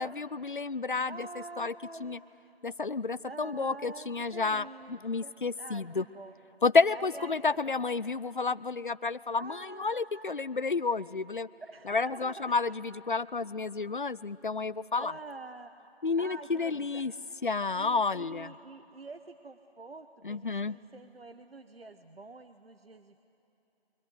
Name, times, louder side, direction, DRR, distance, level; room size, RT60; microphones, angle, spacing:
voice 1, 0.0-1.3 1.6-1.7 2.0-2.2 2.6-4.6 4.9-6.0 6.6-11.5 11.9-15.1 16.0-17.1 17.4-18.5 20.2-20.8, left 4 dB, 50° left, 19 dB, 0.5 m, -30 dB
voice 2, 1.0-2.2 2.5-2.6 3.3-6.3 6.9-7.8 9.4-10.4 11.6-12.6 15.0-15.7 16.2-17.0 17.8-23.3, right 3 dB, 65° right, 9 dB, 1.1 m, -47 dB
29.5 x 23.5 x 8.0 m, 2.8 s
figure-of-eight pair, 165°, 32 cm